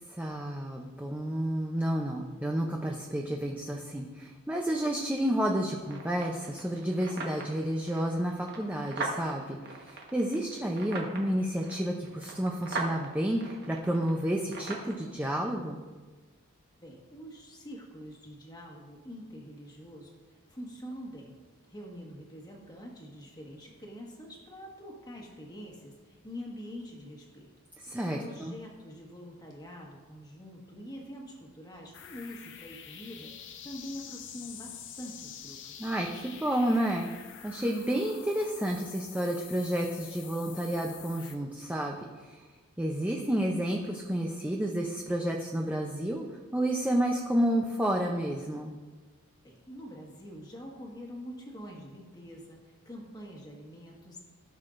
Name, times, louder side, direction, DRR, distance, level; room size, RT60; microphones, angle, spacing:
voice 1, 0.1-15.8 27.8-28.5 35.8-37.1 37.4-42.5 42.8-48.7, right 1 dB, 5° right, 0 dB, 0.6 m, -30 dB
sound 1, 5.8-14.9, right 2 dB, 50° right, 1.3 m, -41 dB
voice 2, 16.8-20.2 20.5-21.4 21.7-27.5 27.9-33.3 33.6-35.9 49.4-54.2, equal, 20° left, -1 dB, 1.5 m, -45 dB
sound 2, 31.9-41.4, left 9 dB, 60° left, 0.6 m, -47 dB
15.0 x 6.4 x 2.5 m, 1.4 s
head